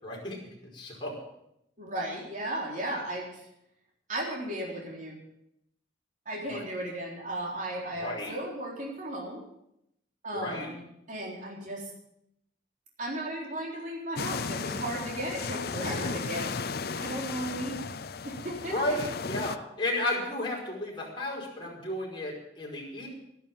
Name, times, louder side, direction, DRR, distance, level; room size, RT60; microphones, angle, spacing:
voice 1, 0.0-1.2 6.5-6.6 8.0-8.3 10.3-10.7 18.7-23.1, left 1 dB, 25° left, -2 dB, 5.2 m, -33 dB
voice 2, 1.8-3.4 4.1-5.2 6.3-9.4 10.2-10.8 11.1-11.8 13.0-16.6 17.0-17.8 18.2-19.0, right 1 dB, 45° right, -3 dB, 4.0 m, -35 dB
sound 1, 14.2-19.6, left 5 dB, 55° left, 0.6 m, -35 dB
13.0 x 12.5 x 7.4 m, 0.79 s
head